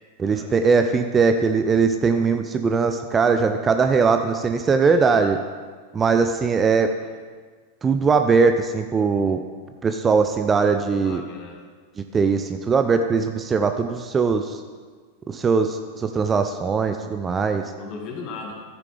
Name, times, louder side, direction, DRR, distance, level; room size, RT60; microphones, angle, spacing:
voice 1, 0.2-5.4 5.9-6.9 7.8-9.4 9.8-11.2 12.1-14.6 15.3-17.6, right 5 dB, 20° right, 7 dB, 0.5 m, -20 dB
voice 2, 4.9-5.3 10.9-11.6 17.8-18.5, left 4 dB, 40° left, 1 dB, 2.0 m, -37 dB
13.5 x 9.2 x 3.4 m, 1.5 s
figure-of-eight pair, 90°, 0 cm